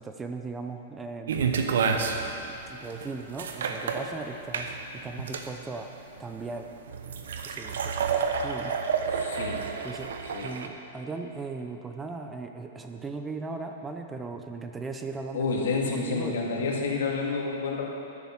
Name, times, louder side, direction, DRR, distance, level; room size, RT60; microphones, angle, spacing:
voice 1, 0.0-1.5 1.8-5.9 6.2-6.7 7.5-8.8 9.8-10.1 10.4-16.4, right 4 dB, 10° right, 5 dB, 0.6 m, -38 dB
sound 1, 1.3-10.7, right 6 dB, 80° right, 1.0 m, -30 dB
voice 2, 9.1-9.7 10.3-10.5 15.3-17.8, left 4 dB, 80° left, -1 dB, 2.1 m, -29 dB
11.0 x 7.1 x 7.4 m, 2.7 s
hypercardioid pair, 145°, 0 cm